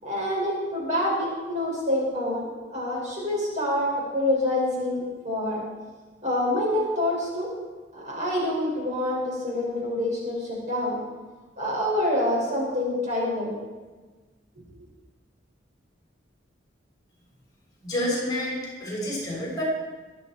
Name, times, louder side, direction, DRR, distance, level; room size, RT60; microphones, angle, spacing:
voice 1, 0.0-5.6 6.2-7.5 7.9-11.0 11.6-13.6, left 1 dB, 40° right, -4 dB, 5.9 m, -26 dB
voice 2, 17.8-19.6, left 1 dB, 20° left, -4 dB, 5.5 m, -29 dB
24.0 x 9.5 x 4.5 m, 1.3 s
head